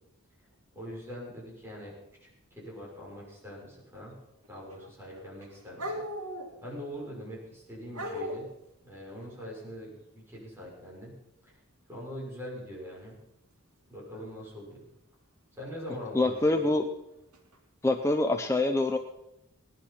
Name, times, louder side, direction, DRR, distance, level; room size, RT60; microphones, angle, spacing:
voice 1, 0.7-4.2 4.5-6.0 6.6-8.5 8.8-11.1 11.4-11.5 11.9-13.2 13.9-14.8 15.5-16.8, equal, 10° right, -5 dB, 6.3 m, -43 dB
sound 1, 4.4-4.9 5.1-6.9 7.9-8.5 12.7-12.9 14.1-14.2 16.4-16.5 17.3-17.6, equal, 90° right, 2.8 m, -38 dB
voice 2, 16.1-16.9 17.8-19.0, left 2 dB, 15° left, 5 dB, 0.6 m, -25 dB
17.5 x 11.5 x 5.7 m, 0.89 s
head